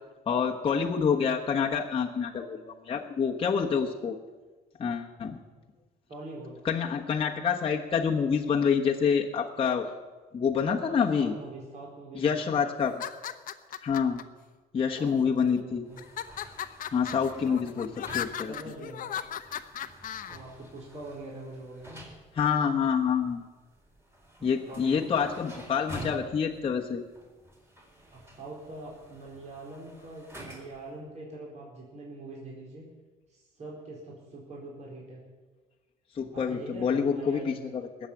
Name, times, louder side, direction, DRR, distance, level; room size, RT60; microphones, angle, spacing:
voice 1, 0.3-4.2 4.8-5.4 6.6-9.9 10.3-11.3 12.1-12.9 13.8-14.2 14.7-15.8 16.9-17.9 18.1-18.5 22.4-23.4 24.4-27.0 36.1-37.5, left 6 dB, 35° left, -1 dB, 1.2 m, -27 dB
voice 2, 6.1-6.6 10.8-12.6 15.0-16.0 17.4-17.8 18.4-19.2 20.2-22.0 24.4-25.1 28.1-32.9 33.3-35.2 36.3-37.6, right 2 dB, 40° right, -3 dB, 4.4 m, -43 dB
sound 1, 12.9-14.2 15.0-15.5 16.0-20.4, left 10 dB, 55° left, 0.9 m, -37 dB
sound 2, 15.8-30.9, right 1 dB, 15° right, 4.0 m, -49 dB
19.5 x 7.5 x 8.5 m, 1.3 s
cardioid pair, 110°, 17 cm